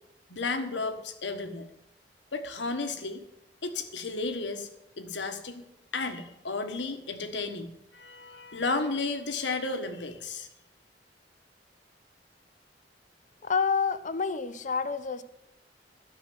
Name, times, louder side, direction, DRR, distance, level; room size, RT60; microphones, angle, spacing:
voice 1, 0.3-1.7 2.3-3.2 3.6-4.7 5.0-5.6 5.9-10.5, left 3 dB, 90° left, 7 dB, 1.3 m, -33 dB
voice 2, 13.4-15.2, left 5 dB, 45° left, 12 dB, 0.7 m, -28 dB
12.5 x 6.6 x 9.2 m, 0.88 s
head